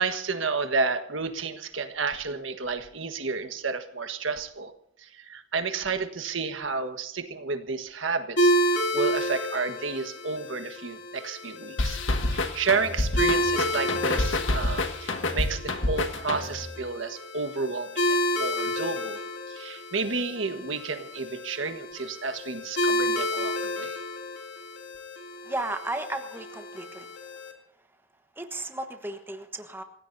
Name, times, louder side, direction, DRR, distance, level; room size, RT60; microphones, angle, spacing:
voice 1, 0.0-4.7 5.0-12.0 12.3-19.2 19.5-24.0, right 4 dB, 85° right, 9 dB, 1.5 m, -31 dB
sound 1, 8.4-27.5, equal, 60° left, 2.8 m, -30 dB
sound 2, 11.8-16.7, left 2 dB, 80° left, 1.7 m, -28 dB
voice 2, 25.4-27.1 28.4-29.8, right 2 dB, 10° right, 6 dB, 1.3 m, -34 dB
28.0 x 16.0 x 2.8 m, 0.75 s
head